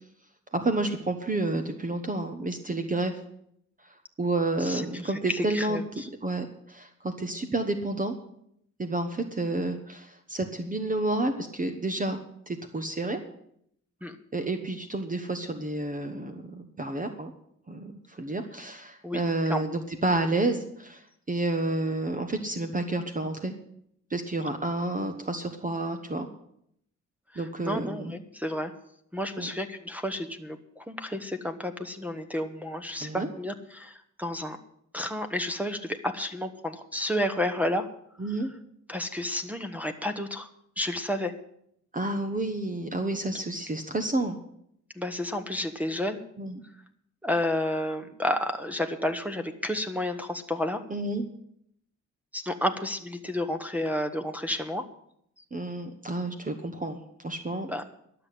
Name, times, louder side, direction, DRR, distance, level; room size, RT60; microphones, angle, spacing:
voice 1, 0.5-3.1 4.2-5.8 6.2-8.1 8.8-12.2 12.5-13.2 14.3-17.3 17.7-23.5 24.1-26.3 27.4-28.1 29.4-29.5 33.0-33.3 38.2-38.5 41.9-44.4 46.4-46.6 50.9-51.3 55.5-57.7, right 2 dB, 30° right, 6 dB, 1.1 m, -30 dB
voice 2, 4.6-6.1 14.0-14.2 19.0-19.2 19.5-19.6 27.3-28.7 29.1-34.6 34.9-37.9 38.9-40.5 40.8-41.3 43.3-43.4 44.9-46.2 47.2-50.8 52.3-54.8 57.7-57.8, left 1 dB, 5° right, 4 dB, 1.0 m, -31 dB
12.0 x 6.9 x 9.9 m, 0.72 s
cardioid pair, 95°, 29 cm